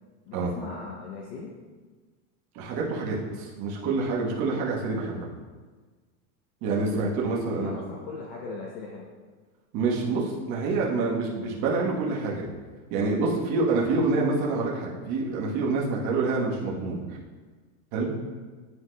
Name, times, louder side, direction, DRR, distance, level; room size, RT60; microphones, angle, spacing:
voice 1, 0.3-1.5 7.5-9.1, left 4 dB, 45° left, -2 dB, 0.7 m, -38 dB
voice 2, 2.5-5.3 6.6-7.8 9.7-12.5 12.9-17.0 17.9-18.1, right 3 dB, 40° right, -3 dB, 1.1 m, -27 dB
9.7 x 4.6 x 2.2 m, 1.4 s
supercardioid pair, 160°, 45 cm